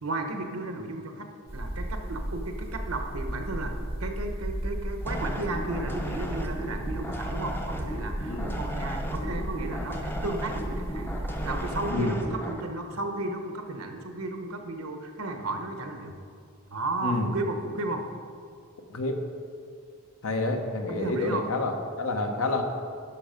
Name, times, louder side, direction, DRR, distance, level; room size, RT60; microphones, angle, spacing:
voice 1, 0.0-11.1 11.4-16.1 16.7-18.0 20.9-21.5, right 2 dB, 75° right, 5 dB, 1.0 m, -34 dB
sound 1, 1.5-11.9, right 1 dB, 30° right, 0.7 m, -35 dB
sound 2, 5.0-12.6, equal, 10° left, 0.6 m, -36 dB
voice 2, 20.2-22.6, left 2 dB, 70° left, 4 dB, 1.0 m, -28 dB
11.0 x 5.9 x 5.2 m, 2.2 s
head